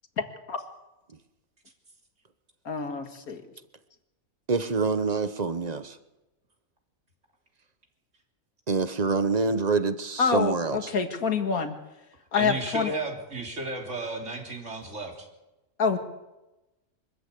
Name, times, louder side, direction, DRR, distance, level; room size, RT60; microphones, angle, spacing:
voice 1, 2.7-3.4 10.2-11.7 12.3-12.9 15.8-16.0, left 5 dB, 85° left, 6 dB, 2.3 m, -26 dB
voice 2, 4.5-6.0 8.7-10.9, right 4 dB, 35° right, 11 dB, 0.9 m, -26 dB
voice 3, 12.4-15.3, right 2 dB, 55° right, 1 dB, 3.6 m, -34 dB
24.5 x 14.0 x 8.3 m, 1.0 s
omnidirectional pair, 1.5 m